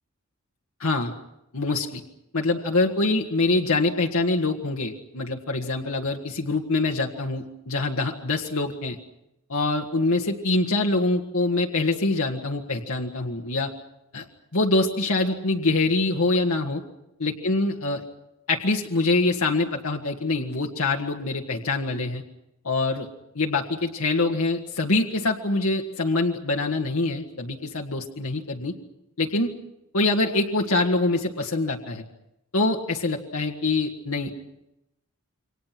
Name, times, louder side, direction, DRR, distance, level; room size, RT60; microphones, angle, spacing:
voice 1, 0.8-1.1 1.5-2.0 2.3-9.0 9.5-13.7 14.1-14.3 14.5-16.8 17.2-18.0 18.5-22.2 22.6-23.1 23.4-28.7 29.2-29.5 29.9-32.0 32.5-34.3, left 2 dB, 80° left, 0 dB, 1.8 m, -24 dB
28.5 x 24.5 x 6.1 m, 0.87 s
head